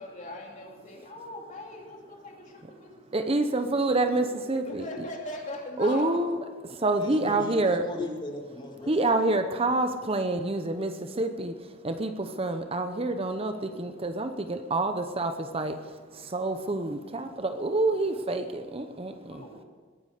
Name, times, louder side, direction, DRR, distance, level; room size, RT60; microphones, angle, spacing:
voice 1, 0.0-6.4 19.3-19.6, left 1 dB, 40° left, 1 dB, 2.7 m, -41 dB
voice 2, 3.1-4.8 5.8-6.4 6.8-7.8 8.9-10.9 11.2-11.5 11.8-15.8 16.3-19.4, right 2 dB, 30° right, 8 dB, 0.8 m, -27 dB
voice 3, 7.0-9.6, left 2 dB, 25° left, 1 dB, 2.3 m, -38 dB
21.0 x 9.6 x 6.6 m, 1.5 s
head